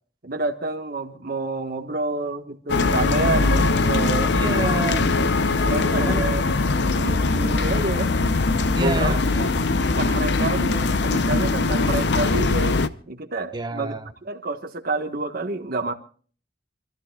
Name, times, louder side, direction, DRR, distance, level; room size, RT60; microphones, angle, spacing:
voice 1, 0.2-4.3 5.6-6.4 6.9-8.1 8.8-9.2 9.9-12.8 13.1-13.9 14.2-15.9, right 3 dB, 55° right, 1.4 m, -28 dB
sound 1, 2.7-12.9, left 3 dB, 65° left, 0.7 m, -21 dB
voice 2, 3.6-5.1 5.9-6.3 8.7-9.5 13.5-14.1, right 1 dB, 25° right, 1.2 m, -29 dB
28.0 x 13.5 x 2.4 m
head